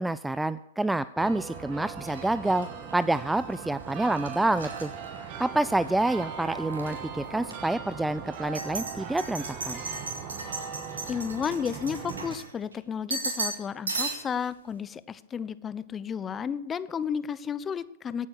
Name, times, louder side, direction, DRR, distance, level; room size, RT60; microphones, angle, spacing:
voice 1, 0.0-4.9 5.4-9.8, right 2 dB, 5° right, 16 dB, 0.4 m, -28 dB
sound 1, 1.2-12.4, right 6 dB, 40° right, 2.3 m, -39 dB
sound 2, 2.1-6.0 6.3-7.0 7.5-7.6 8.3-12.7 13.1-13.6 13.9-14.5, right 3 dB, 85° right, 3.6 m, -36 dB
voice 2, 11.1-18.3, left 7 dB, 20° left, 16 dB, 0.7 m, -32 dB
16.0 x 8.9 x 6.5 m, 0.86 s
hypercardioid pair, 110°, 0 cm